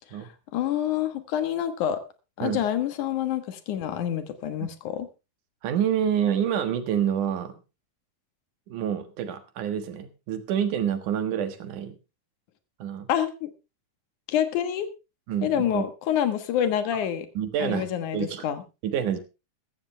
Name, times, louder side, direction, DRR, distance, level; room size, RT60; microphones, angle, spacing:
voice 1, 0.5-2.0 2.4-5.1 13.1-13.5 14.3-14.9 15.4-17.3 17.6-18.6, left 10 dB, 80° left, 10 dB, 2.9 m, -27 dB
voice 2, 5.6-7.6 8.7-12.0 12.8-13.1 15.3-15.8 17.3-17.9 18.1-18.5 18.8-19.2, right 9 dB, 90° right, 9 dB, 3.0 m, -27 dB
15.0 x 14.5 x 3.3 m, 0.28 s
omnidirectional pair, 3.4 m